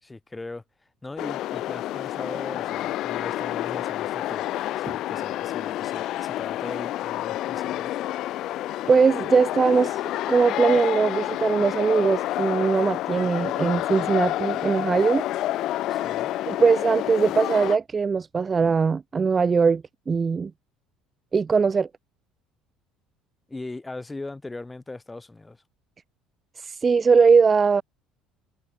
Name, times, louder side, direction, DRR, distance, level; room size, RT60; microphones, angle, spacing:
voice 1, 0.0-0.6 1.0-4.5 4.8-7.9 15.9-16.3 23.5-25.6, left 2 dB, 10° left, 5.0 m, -39 dB
sound 1, 1.2-17.8, left 14 dB, 50° left, 3.4 m, -29 dB
voice 2, 8.9-10.0 10.3-15.2 16.5-20.5 21.3-21.9 26.6-27.8, right 5 dB, 20° right, 0.4 m, -21 dB
cardioid pair, 155°, 0 cm